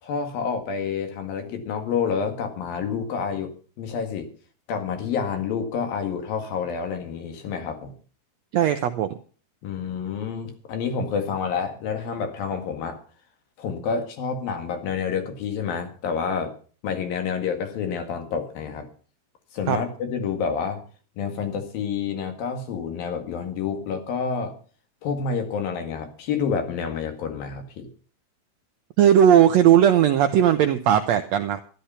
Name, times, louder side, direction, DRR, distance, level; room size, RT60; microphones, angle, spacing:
voice 1, 0.0-4.3 4.7-7.9 9.6-13.0 13.6-16.5 16.8-18.9 19.5-20.8 21.2-24.5 25.0-27.9, left 6 dB, 90° left, 5 dB, 3.8 m, -28 dB
voice 2, 8.5-9.1 19.7-19.8 29.0-31.6, right 10 dB, 80° right, 8 dB, 1.5 m, -17 dB
13.0 x 12.0 x 5.7 m, 0.41 s
omnidirectional pair, 4.0 m